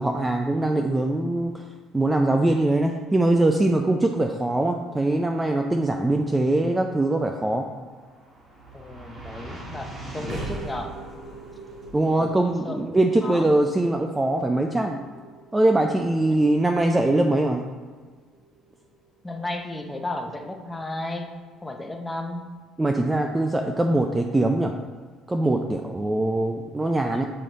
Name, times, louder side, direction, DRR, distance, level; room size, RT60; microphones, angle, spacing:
voice 1, 0.0-1.6 1.9-7.7 11.9-15.0 15.5-17.6 22.8-24.7 25.3-27.3, right 2 dB, 10° right, 4 dB, 0.4 m, -22 dB
sound 1, 7.7-20.1, right 1 dB, 25° right, 1.7 m, -41 dB
voice 2, 8.7-11.0 12.1-12.8 13.2-13.5 19.2-21.3 21.6-22.4 27.1-27.3, left 2 dB, 10° left, 3 dB, 0.7 m, -34 dB
7.6 x 5.0 x 4.0 m, 1.5 s
cardioid pair, 145°, 0 cm